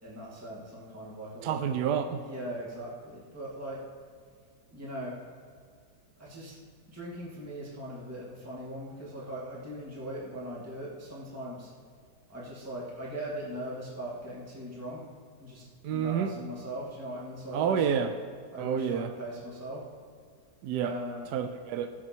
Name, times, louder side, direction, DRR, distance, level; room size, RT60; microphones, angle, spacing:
voice 1, 0.0-1.6 2.2-3.8 4.7-5.2 6.2-6.5 6.9-11.7 12.3-15.0 15.4-17.8 18.5-19.9 20.8-21.3, right 1 dB, 10° right, -6 dB, 2.1 m, -40 dB
voice 2, 1.4-2.2 15.8-16.3 17.5-18.1 18.6-19.1 20.6-20.9 21.3-21.9, right 8 dB, 75° right, 8 dB, 1.1 m, -29 dB
17.5 x 7.3 x 4.5 m, 2.1 s
omnidirectional pair, 1.9 m